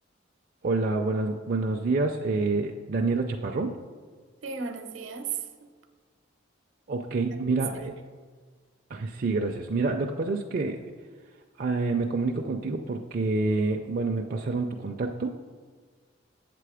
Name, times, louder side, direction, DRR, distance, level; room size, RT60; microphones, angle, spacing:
voice 1, 0.6-3.8 6.9-7.9 8.9-10.8 11.6-15.4, right 3 dB, 45° right, 2 dB, 0.4 m, -27 dB
voice 2, 4.4-5.7 7.3-7.4 7.7-8.1, right 6 dB, 70° right, 8 dB, 0.8 m, -36 dB
8.0 x 6.8 x 4.9 m, 1.5 s
head